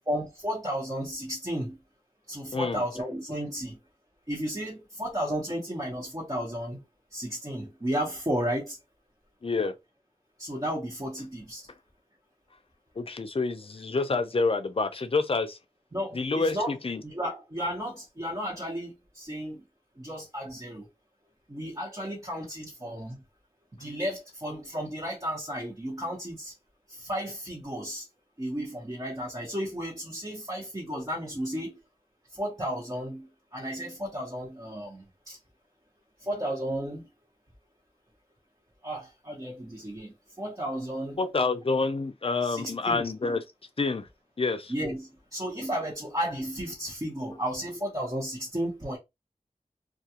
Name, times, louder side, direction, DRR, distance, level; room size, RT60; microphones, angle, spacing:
voice 1, 0.1-1.8 2.3-3.8 4.3-6.8 7.1-8.8 10.4-11.6 15.9-16.7 17.0-19.6 20.0-20.8 21.5-23.2 23.8-26.5 27.0-28.0 28.4-31.8 32.4-33.3 33.5-35.4 36.3-37.1 38.8-41.2 42.4-43.0 44.7-49.0, equal, 30° right, 0.9 m, -33 dB
voice 2, 2.5-2.8 9.4-9.7 13.0-15.6 16.1-17.0 41.2-43.4 43.8-44.1 44.4-44.7, left 3 dB, 45° left, 0.5 m, -28 dB
2.3 x 2.3 x 2.8 m
wide cardioid pair, 45°, 13 cm